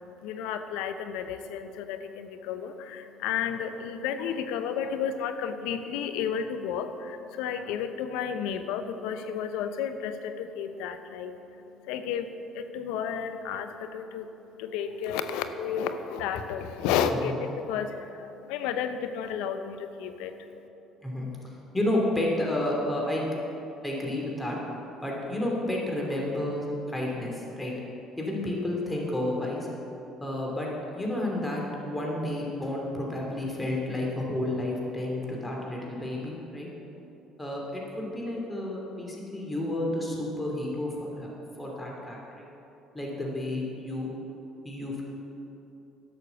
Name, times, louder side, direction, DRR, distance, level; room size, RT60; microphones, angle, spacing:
voice 1, 0.0-11.4 11.8-14.3 14.6-20.5, left 7 dB, 80° left, 9 dB, 0.8 m, -32 dB
voice 2, 21.7-23.3 23.8-24.6 25.0-27.7 28.2-29.7 30.2-30.7 30.9-36.7 37.4-41.3 41.6-42.5 42.9-44.1 44.6-45.0, left 1 dB, 10° left, -2 dB, 2.8 m, -31 dB
11.5 x 6.6 x 7.0 m, 3.0 s
supercardioid pair, 75°, 0 cm